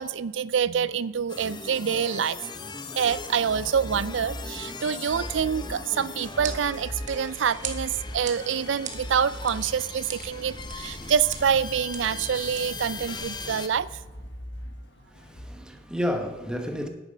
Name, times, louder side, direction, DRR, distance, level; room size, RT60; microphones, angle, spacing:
voice 1, 0.0-2.4 3.0-13.9, right 7 dB, 80° right, 0.4 m, -26 dB
sound 1, 1.3-13.7, left 3 dB, 25° left, 0.7 m, -39 dB
sound 2, 3.1-15.5, equal, 65° left, 1.4 m, -42 dB
sound 3, 6.1-13.2, right 7 dB, 40° right, 1.2 m, -42 dB
voice 2, 15.1-16.9, equal, 5° right, 1.1 m, -31 dB
10.5 x 9.0 x 5.1 m
head